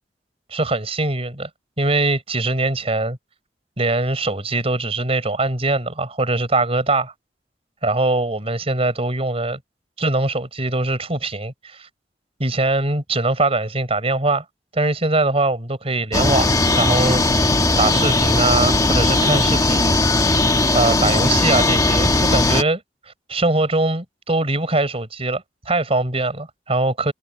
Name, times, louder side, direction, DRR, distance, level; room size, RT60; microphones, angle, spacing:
voice 1, 0.5-1.5 1.8-3.2 3.8-7.1 7.8-9.6 10.0-11.9 12.4-14.4 14.7-17.2 17.8-20.0 20.7-22.8 23.3-27.1, right 2 dB, 35° right, 4.8 m, -22 dB
sound 1, 16.1-22.6, left 2 dB, 20° left, 1.3 m, -18 dB
head